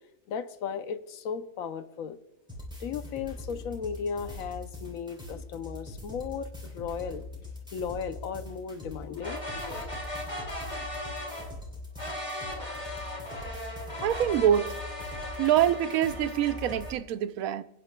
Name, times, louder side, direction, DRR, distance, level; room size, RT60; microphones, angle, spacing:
voice 1, 0.3-2.2 2.8-9.9, left 6 dB, 70° left, 1.1 m, -36 dB
sound 1, 2.5-16.9, left 2 dB, 5° right, 3.4 m, -42 dB
sound 2, 9.2-11.5 12.0-16.9, left 1 dB, 20° left, 2.5 m, -38 dB
voice 2, 14.0-14.8 15.4-17.6, right 10 dB, 75° right, 1.0 m, -25 dB
24.0 x 9.7 x 2.2 m
omnidirectional pair, 1.5 m